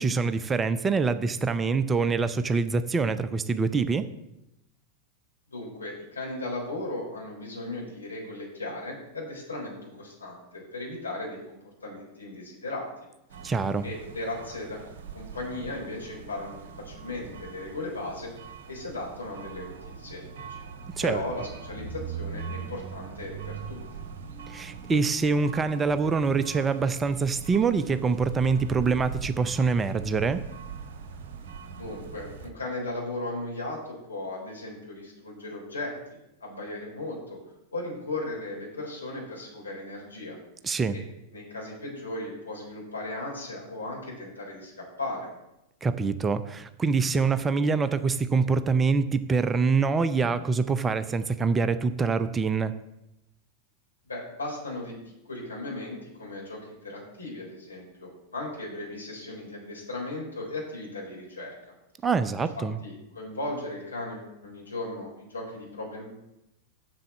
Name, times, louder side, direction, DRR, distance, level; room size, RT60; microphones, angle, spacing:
voice 1, 0.0-4.1 13.4-13.9 21.0-21.2 24.5-30.4 40.6-41.0 45.8-52.7 62.0-62.8, right 4 dB, 15° right, 12 dB, 0.5 m, -25 dB
voice 2, 5.5-12.9 13.8-14.8 15.1-18.3 18.7-20.2 20.5-20.6 21.0-24.0 31.7-37.4 37.7-40.4 40.9-41.0 41.3-45.3 54.1-54.9 55.3-61.5 62.5-66.1, left 2 dB, 75° left, -3 dB, 4.1 m, -36 dB
sound 1, 13.3-32.5, right 6 dB, 55° right, 1.1 m, -41 dB
7.7 x 7.0 x 7.5 m, 0.89 s
figure-of-eight pair, 90°, 0 cm